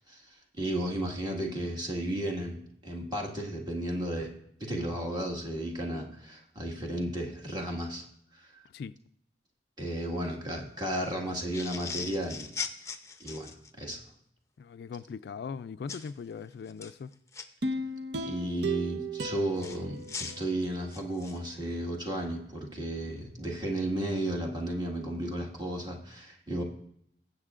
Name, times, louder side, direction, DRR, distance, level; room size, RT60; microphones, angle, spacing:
voice 1, 0.6-4.3 4.6-8.0 8.3-8.6 9.8-12.5 13.2-13.5 13.8-14.0 18.2-26.6, right 1 dB, 25° right, 1.7 m, -33 dB
sound 1, 11.5-14.0 15.9-16.1 16.7-17.4 19.6-21.5, left 5 dB, 15° left, 0.6 m, -39 dB
voice 2, 14.6-17.1, left 6 dB, 65° left, 0.3 m, -40 dB
sound 2, 17.6-20.9 21.4-21.5, right 2 dB, 70° right, 0.7 m, -35 dB
20.5 x 8.0 x 2.5 m
head